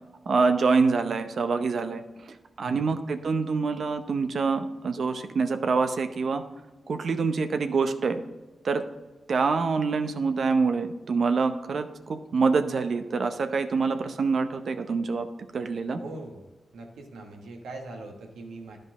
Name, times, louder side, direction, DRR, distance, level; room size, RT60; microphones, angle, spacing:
voice 1, 0.3-2.0 2.6-6.4 6.9-8.2 8.6-8.8 9.3-15.3 15.5-16.0, right 4 dB, 65° right, 8 dB, 0.7 m, -25 dB
voice 2, 2.6-3.0 16.0-16.4 16.7-18.8, right 2 dB, 90° right, 1 dB, 1.2 m, -41 dB
10.5 x 5.2 x 3.6 m, 1.2 s
supercardioid pair, 45°, 0 cm